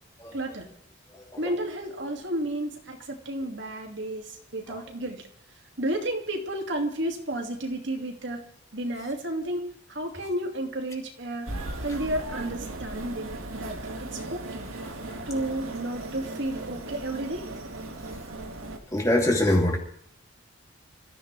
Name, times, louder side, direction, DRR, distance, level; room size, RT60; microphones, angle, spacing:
voice 1, 0.3-0.7 1.4-5.2 5.8-8.5 8.7-14.7 15.3-17.5, right 1 dB, 60° right, 2 dB, 2.7 m, -32 dB
sound 1, 11.5-18.8, right 2 dB, 85° right, 2.3 m, -37 dB
voice 2, 18.9-19.8, left 1 dB, 15° left, 0 dB, 3.0 m, -24 dB
27.0 x 15.0 x 3.5 m, 0.68 s
head